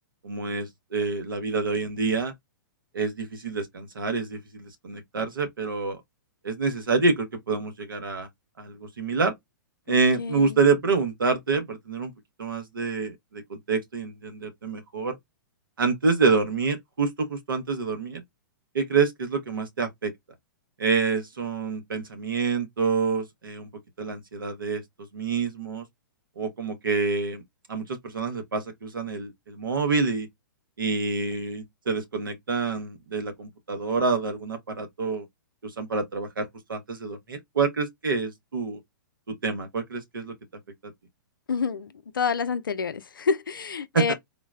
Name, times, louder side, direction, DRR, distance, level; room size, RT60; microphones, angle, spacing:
voice 1, 0.2-2.3 2.9-6.0 6.4-8.3 8.6-9.3 9.9-12.1 12.4-15.2 15.8-18.2 18.7-20.1 20.8-23.7 24.0-24.8 25.1-25.8 26.4-27.4 27.7-30.3 30.8-35.3 35.6-38.8 39.3-40.3 40.8-40.9 43.9-44.1, right 4 dB, 80° right, 1.0 m, -27 dB
voice 2, 9.9-10.5 41.5-41.9 42.1-44.1, left 5 dB, 85° left, 0.4 m, -28 dB
3.7 x 2.0 x 2.3 m
hypercardioid pair, 120°, 11 cm